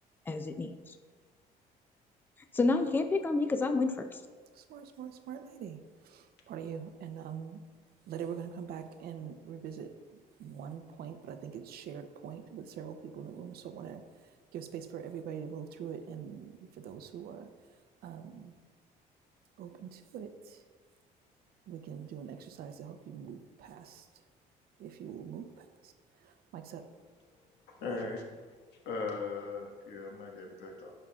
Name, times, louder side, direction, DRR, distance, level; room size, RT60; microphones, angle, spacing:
voice 1, 0.3-1.0 2.5-4.2, left 3 dB, 10° left, 8 dB, 0.4 m, -29 dB
voice 2, 4.6-5.8 6.0-7.6 8.1-9.9 10.4-14.0 14.5-16.5 16.8-17.5 18.0-18.5 19.6-20.6 21.7-24.1 24.8-25.9 26.2-26.8, right 8 dB, 65° right, 8 dB, 0.6 m, -43 dB
voice 3, 27.7-28.2 28.8-30.9, left 4 dB, 80° left, 0 dB, 1.5 m, -38 dB
11.0 x 5.5 x 2.4 m, 1.5 s
cardioid pair, 110°, 17 cm